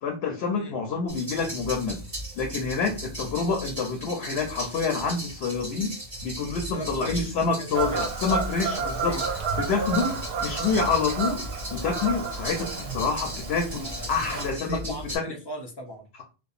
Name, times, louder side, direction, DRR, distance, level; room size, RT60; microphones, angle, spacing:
voice 1, 0.0-2.0 2.4-6.0 6.2-9.2 9.6-14.9, left 4 dB, 80° left, 0.8 m, -27 dB
sound 1, 1.1-15.2, equal, 30° right, 1.4 m, -37 dB
voice 2, 6.6-8.2 9.0-9.3 13.7-16.1, equal, 40° left, 0.4 m, -39 dB
Fowl / Bird vocalization bird call bird song, 7.7-14.5, right 5 dB, 70° right, 0.9 m, -31 dB
2.7 x 2.1 x 2.3 m
omnidirectional pair, 1.1 m